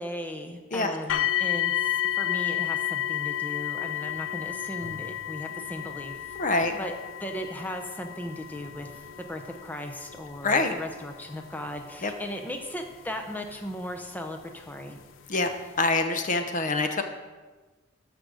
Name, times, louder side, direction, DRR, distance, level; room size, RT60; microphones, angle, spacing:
voice 1, 0.0-6.9 7.2-8.9 9.2-15.0, equal, 10° left, 3 dB, 0.8 m, -37 dB
sound 1, 1.1-14.0 14.8-14.9 15.5-15.6, left 11 dB, 80° left, 0.5 m, -32 dB
voice 2, 6.4-6.7 10.4-10.7 12.0-12.1 15.3-15.5 15.8-17.0, left 3 dB, 40° left, 7 dB, 0.8 m, -25 dB
13.0 x 5.1 x 6.4 m, 1.3 s
head